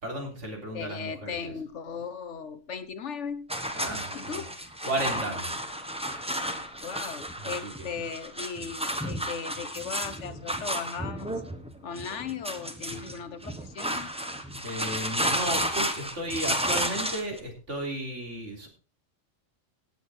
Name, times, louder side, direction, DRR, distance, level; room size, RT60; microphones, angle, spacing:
voice 1, 0.0-1.4 3.7-4.4 4.9-5.6 7.4-7.9 14.6-18.7, right 1 dB, 80° right, 1 dB, 3.8 m, -34 dB
voice 2, 0.7-3.5 4.1-4.5 6.8-11.3 11.8-14.1, left 6 dB, 75° left, 13 dB, 1.4 m, -37 dB
sound 1, 3.5-17.4, equal, 5° right, 1.2 m, -32 dB
17.5 x 7.2 x 4.3 m, 0.34 s
omnidirectional pair, 1.2 m